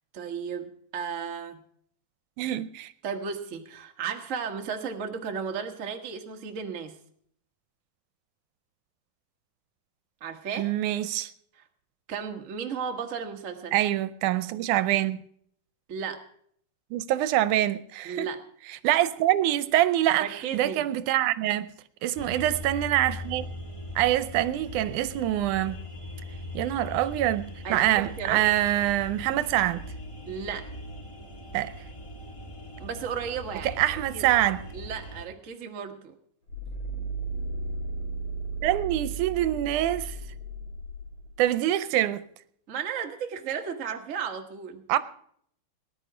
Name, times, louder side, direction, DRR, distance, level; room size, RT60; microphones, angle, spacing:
voice 1, 0.1-1.6 3.0-7.0 10.2-10.7 12.1-13.7 15.9-16.2 18.0-18.4 20.2-20.9 27.6-28.4 30.3-30.7 32.8-34.3 34.7-36.2 42.7-44.8, right 6 dB, 50° right, 0.9 m, -34 dB
voice 2, 2.4-2.9 10.6-11.3 13.7-15.2 16.9-18.3 18.8-21.7 22.0-23.5 24.0-25.8 26.5-29.8 31.5-31.7 33.6-34.6 38.6-40.2 41.4-42.3 44.9-45.0, right 13 dB, 80° right, 2.1 m, -25 dB
sound 1, 22.2-35.3, left 1 dB, 15° left, 1.2 m, -40 dB
sound 2, 36.5-41.4, right 3 dB, 55° left, 4.7 m, -35 dB
19.0 x 10.5 x 5.0 m
omnidirectional pair, 3.6 m